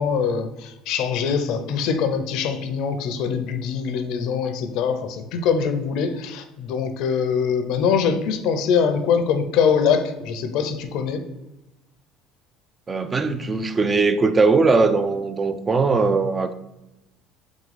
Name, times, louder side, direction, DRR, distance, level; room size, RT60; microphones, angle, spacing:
voice 1, 0.0-11.2, left 6 dB, 70° left, 0.5 m, -23 dB
voice 2, 12.9-16.5, right 4 dB, 25° right, 0.3 m, -20 dB
3.7 x 3.6 x 3.3 m
cardioid pair, 115°, 0 cm